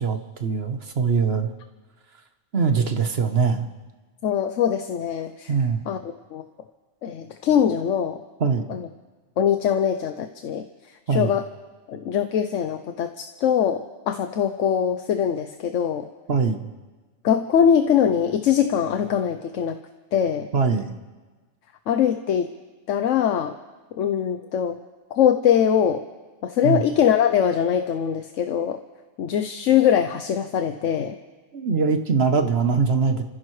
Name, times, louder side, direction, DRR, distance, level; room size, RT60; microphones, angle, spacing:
voice 1, 0.0-1.5 2.5-3.7 5.5-5.8 8.4-8.7 11.1-11.3 16.3-16.7 20.5-21.0 26.6-26.8 31.5-33.2, right 5 dB, 55° right, 7 dB, 1.2 m, -22 dB
voice 2, 4.2-5.5 5.9-6.0 6.3-6.4 7.0-8.2 8.7-8.9 9.4-10.7 11.1-11.4 11.9-16.1 17.2-19.8 20.1-20.5 21.9-22.5 22.9-23.5 24.0-24.8 25.1-26.0 26.4-28.8 29.2-31.2, left 8 dB, 80° left, 7 dB, 1.1 m, -22 dB
29.0 x 15.0 x 3.2 m, 1.3 s
omnidirectional pair, 1.3 m